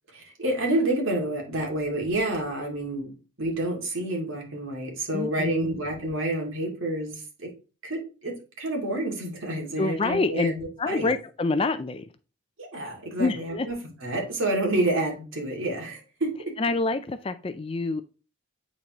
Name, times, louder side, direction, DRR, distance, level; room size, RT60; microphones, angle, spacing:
voice 1, 0.1-7.5 7.8-10.6 10.9-11.1 12.6-13.7 14.0-16.3, right 1 dB, 70° right, 2.5 m, -29 dB
voice 2, 5.1-5.8 9.8-10.5 10.8-12.1 13.2-13.7 16.6-18.0, left 3 dB, 25° left, 0.4 m, -27 dB
8.6 x 4.2 x 3.0 m
head